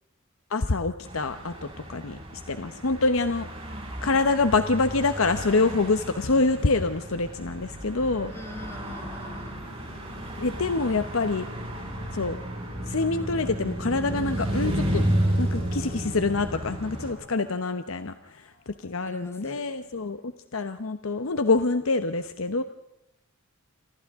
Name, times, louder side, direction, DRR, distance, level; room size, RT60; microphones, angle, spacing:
voice 1, 0.5-1.5 1.9-2.2 2.5-3.5 4.0-8.3 10.4-11.5 12.1-12.4 12.9-15.0 15.4-18.1 18.8-22.6, left 3 dB, 75° left, 9 dB, 0.9 m, -26 dB
sound 1, 1.1-17.1, right 1 dB, 30° right, 6.3 m, -32 dB
sound 2, 7.6-19.4, left 1 dB, 55° left, 2.9 m, -48 dB
voice 2, 8.2-9.6 19.0-19.7, left 1 dB, 15° left, 3 dB, 2.6 m, -44 dB
28.0 x 25.5 x 3.6 m, 0.82 s
head